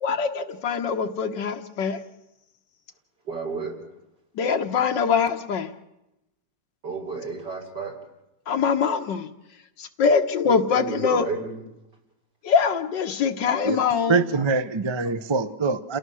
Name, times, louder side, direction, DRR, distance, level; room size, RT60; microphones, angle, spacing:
voice 1, 0.0-2.0 4.4-5.7 8.5-9.3 9.8-11.3 12.4-14.2, left 6 dB, 85° left, 6 dB, 1.9 m, -23 dB
voice 2, 3.3-3.8 6.8-8.0 10.4-11.6 15.0-15.1, right 4 dB, 75° right, 0 dB, 4.4 m, -32 dB
voice 3, 14.1-16.0, right 4 dB, 35° right, 11 dB, 0.4 m, -24 dB
29.0 x 17.0 x 6.3 m, 0.93 s
omnidirectional pair, 1.9 m